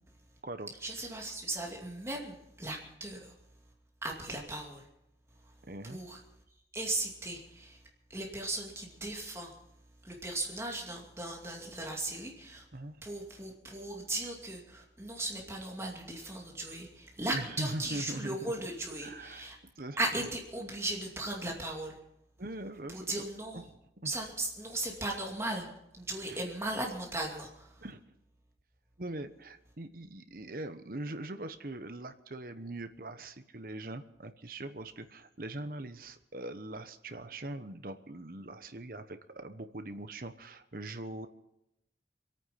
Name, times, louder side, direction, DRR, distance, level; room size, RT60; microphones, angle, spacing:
voice 1, 0.8-3.3 4.0-4.9 5.9-6.2 6.7-7.8 8.1-9.5 10.0-12.6 13.0-19.6 20.0-22.0 22.9-23.6 24.0-25.7 25.9-27.8, right 2 dB, 15° right, 0 dB, 2.5 m, -37 dB
voice 2, 5.7-6.0 12.7-13.1 17.3-18.7 19.0-19.5 19.8-20.3 22.4-23.2 23.5-23.6 24.0-24.1 26.3-26.4 27.8-28.0 29.0-41.3, right 1 dB, 50° right, 9 dB, 1.1 m, -41 dB
25.5 x 9.1 x 5.8 m, 0.84 s
head